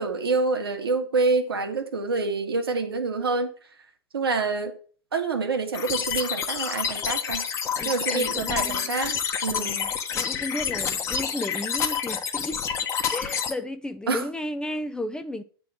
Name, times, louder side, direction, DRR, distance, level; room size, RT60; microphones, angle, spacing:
voice 1, 0.0-3.5 4.1-4.7 5.1-7.5 7.8-9.8 14.1-14.3, right 3 dB, 70° right, 1.6 m, -27 dB
sound 1, 5.7-13.5, left 7 dB, 20° left, 1.1 m, -28 dB
voice 2, 7.8-9.1 9.5-12.6 13.1-15.4, left 1 dB, 5° left, 0.4 m, -34 dB
9.5 x 3.8 x 7.2 m
figure-of-eight pair, 100°, 13 cm